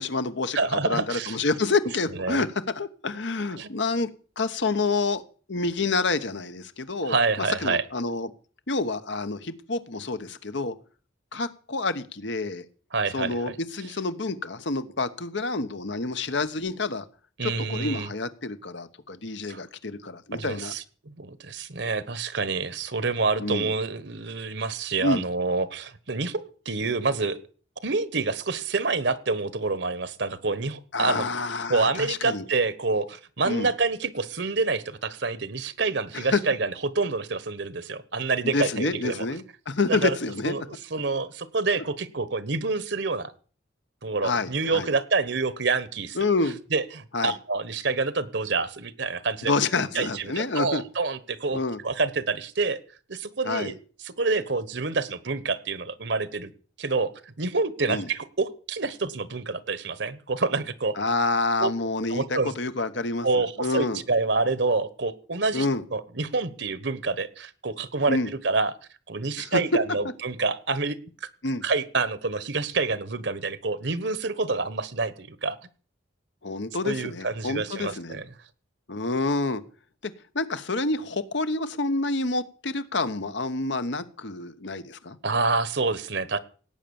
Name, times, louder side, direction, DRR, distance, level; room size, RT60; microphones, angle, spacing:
voice 1, 0.0-2.5 2.7-4.1 4.4-5.2 5.5-7.2 7.6-8.3 8.7-10.7 11.3-12.6 13.1-17.0 17.4-20.7 23.4-23.7 25.0-25.2 30.9-32.4 33.4-33.7 36.1-36.4 38.4-40.7 44.2-44.9 46.1-46.6 47.1-47.3 49.4-50.8 51.5-51.8 53.4-53.7 57.9-58.1 61.0-64.0 65.5-65.8 68.1-68.3 69.4-69.6 71.4-71.6 76.4-78.2 78.9-79.6 80.0-85.2, left 3 dB, 65° left, 11 dB, 1.2 m, -28 dB
voice 2, 0.5-1.4 2.2-2.4 3.6-3.7 7.1-7.8 12.9-13.5 17.4-18.1 19.5-19.6 20.3-27.4 27.8-31.2 31.7-39.3 39.9-40.2 40.5-40.6 40.9-43.3 44.0-46.2 46.7-49.5 49.9-52.8 53.1-53.8 54.0-56.5 56.8-61.0 61.6-61.7 62.1-62.5 63.2-65.7 65.9-68.8 69.1-71.0 71.2-71.3 71.6-75.6 76.8-78.3 85.2-86.4, right 3 dB, 60° right, 16 dB, 1.2 m, -27 dB
18.0 x 9.0 x 7.1 m, 0.41 s
head